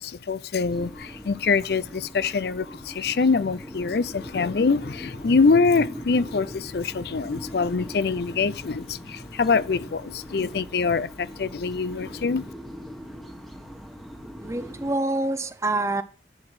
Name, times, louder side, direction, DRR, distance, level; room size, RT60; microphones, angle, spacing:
voice 1, 0.0-12.5, left 4 dB, 60° left, 0.5 m, -24 dB
sound 1, 0.7-14.9, equal, ahead, 1.3 m, -41 dB
voice 2, 14.4-16.0, right 2 dB, 15° right, 0.7 m, -26 dB
10.5 x 8.0 x 6.3 m
head